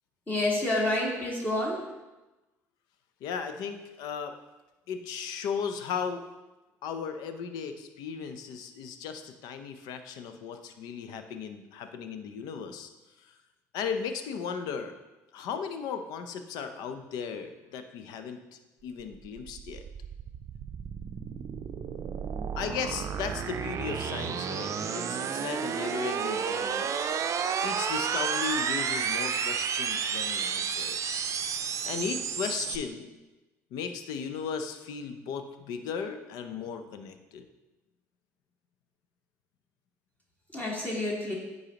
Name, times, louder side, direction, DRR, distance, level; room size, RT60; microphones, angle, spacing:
voice 1, 0.3-1.9 40.5-41.3, left 1 dB, 25° left, -4 dB, 2.3 m, -29 dB
voice 2, 3.2-4.4 4.9-6.2 6.8-12.9 13.2-13.3 13.7-14.9 15.3-18.4 18.8-19.8 22.6-26.9 27.6-31.3 31.8-33.1 33.7-37.5, left 6 dB, 75° left, 8 dB, 0.6 m, -36 dB
sound 1, 19.0-32.8, right 7 dB, 50° right, 0.5 m, -31 dB
9.6 x 4.1 x 2.9 m, 1.1 s
supercardioid pair, 70°, 7 cm